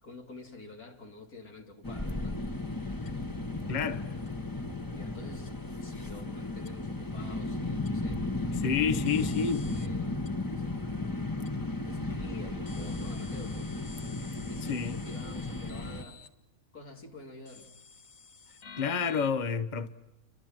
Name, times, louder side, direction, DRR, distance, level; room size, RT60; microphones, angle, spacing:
voice 1, 0.0-2.4 3.3-3.4 4.9-8.2 8.5-10.1 10.5-14.1 14.4-16.2 16.7-17.7, left 3 dB, 90° left, 3.7 m, -49 dB
sound 1, 1.8-16.0, left 2 dB, 15° left, 1.3 m, -34 dB
sound 2, 3.1-3.2 4.3-4.4 5.5-5.6 6.7-6.8 7.9-8.0 9.1-9.9 10.3-10.4 11.5-11.6 12.7-16.3 17.5-19.3, left 5 dB, 65° left, 1.8 m, -50 dB
voice 2, 3.7-4.1 8.6-9.6 14.6-15.0 18.8-19.9, left 6 dB, 35° left, 1.2 m, -29 dB
29.5 x 24.0 x 7.6 m
omnidirectional pair, 1.5 m